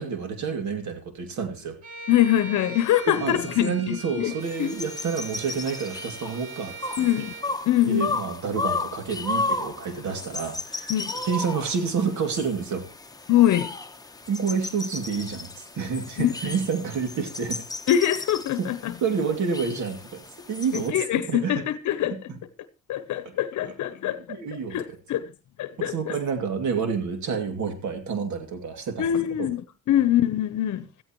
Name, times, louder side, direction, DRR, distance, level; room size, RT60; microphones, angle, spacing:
voice 1, 0.0-1.8 3.1-6.8 7.9-10.9 11.2-12.8 14.3-17.6 18.6-18.7 19.0-21.6 22.1-22.4 23.6-23.7 24.3-25.0 25.8-29.1 29.4-29.5, right 5 dB, 70° right, 2.6 m, -29 dB
Bowed string instrument, 1.8-7.5, right 3 dB, 50° right, 3.2 m, -41 dB
voice 2, 2.1-4.3 4.6-4.7 7.0-7.3 7.7-8.1 10.9-11.1 13.3-13.7 16.2-16.3 17.9-18.9 20.7-22.1 22.9-24.4 24.7-25.2 25.6-26.2 29.0-29.6 29.9-30.9, left 12 dB, 75° left, 0.8 m, -23 dB
sound 1, 4.4-20.9, left 3 dB, 10° left, 1.1 m, -34 dB
16.0 x 14.5 x 3.1 m
cardioid pair, 90°, 30 cm